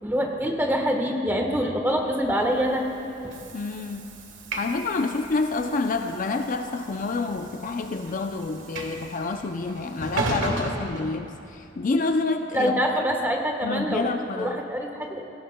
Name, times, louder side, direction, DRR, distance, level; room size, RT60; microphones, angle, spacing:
voice 1, 0.0-2.8 3.2-3.5 12.5-14.0 14.4-15.2, equal, 10° right, 2 dB, 1.2 m, -25 dB
Train / Sliding door, 2.4-11.7, right 2 dB, 75° right, 1.4 m, -36 dB
voice 2, 3.5-4.1 4.6-12.8 13.6-14.6, left 3 dB, 45° left, 6 dB, 0.4 m, -28 dB
18.5 x 16.0 x 2.2 m, 2.7 s
head